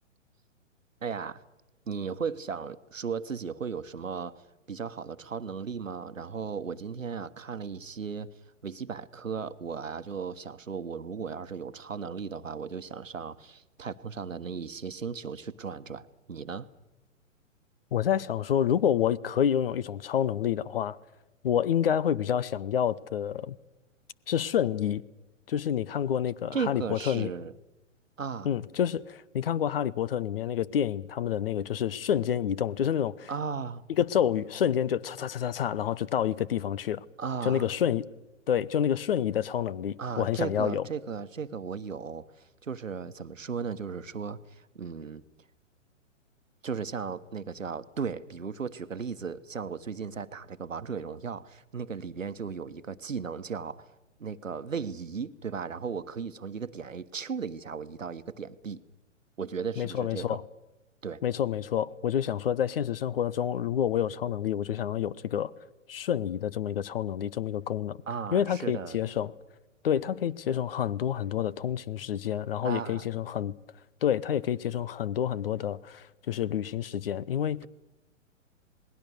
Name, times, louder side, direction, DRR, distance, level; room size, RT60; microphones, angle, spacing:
voice 1, 1.0-1.4 1.9-4.4 4.7-8.3 8.6-16.7 26.5-27.5 28.2-28.5 33.3-33.9 37.2-37.7 40.0-45.2 46.6-53.9 54.2-58.8 59.4-60.4 61.0-61.2 68.1-69.0 72.6-73.2, right 6 dB, 75° right, 1.2 m, -36 dB
voice 2, 17.9-21.0 21.4-23.5 24.3-25.0 25.5-27.3 28.4-33.3 34.0-37.0 37.4-38.0 38.5-40.8 59.8-60.4 61.2-65.5 65.9-68.0 68.3-69.3 69.8-73.5 74.0-77.7, left 9 dB, 45° left, 0.8 m, -28 dB
27.5 x 20.0 x 6.6 m
figure-of-eight pair, 120°, 39 cm